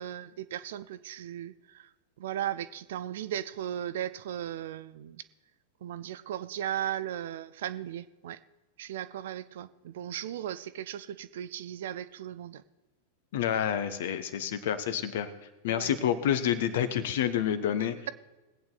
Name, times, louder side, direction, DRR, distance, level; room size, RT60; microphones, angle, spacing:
voice 1, 0.0-1.9 2.2-5.2 5.8-8.4 8.8-12.6 15.7-15.9, right 11 dB, 55° right, 15 dB, 0.5 m, -37 dB
voice 2, 13.3-15.3 15.6-18.0, left 9 dB, 55° left, 11 dB, 1.0 m, -28 dB
20.5 x 8.8 x 4.0 m, 1.1 s
figure-of-eight pair, 90°, 0 cm